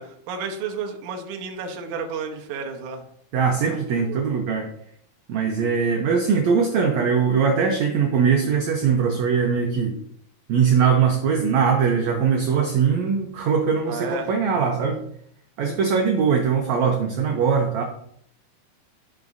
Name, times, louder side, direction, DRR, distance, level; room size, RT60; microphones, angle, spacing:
voice 1, 0.0-3.0 3.7-3.8 4.1-4.4 13.9-14.3, right 5 dB, 65° right, 3 dB, 2.2 m, -32 dB
voice 2, 3.3-4.7 5.3-9.9 10.5-15.0 15.6-17.8, right 6 dB, 85° right, 2 dB, 1.6 m, -21 dB
14.0 x 6.0 x 2.6 m, 0.69 s
omnidirectional pair, 4.4 m